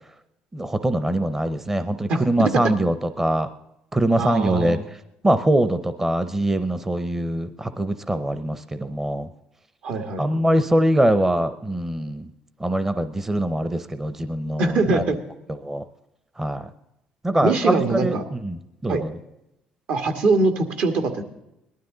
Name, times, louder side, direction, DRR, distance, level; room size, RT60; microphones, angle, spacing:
voice 1, 0.5-3.5 3.9-4.8 5.2-9.3 10.2-12.3 12.6-15.0 15.6-15.8 16.4-16.7 17.2-19.1, right 1 dB, 15° right, 11 dB, 0.7 m, -23 dB
voice 2, 4.2-4.8 9.8-10.4 14.6-15.2 17.4-18.2 18.9-19.0 19.9-21.2, right 3 dB, 65° right, 6 dB, 1.8 m, -22 dB
19.0 x 12.0 x 3.9 m, 0.86 s
cardioid pair, 105°, 3 cm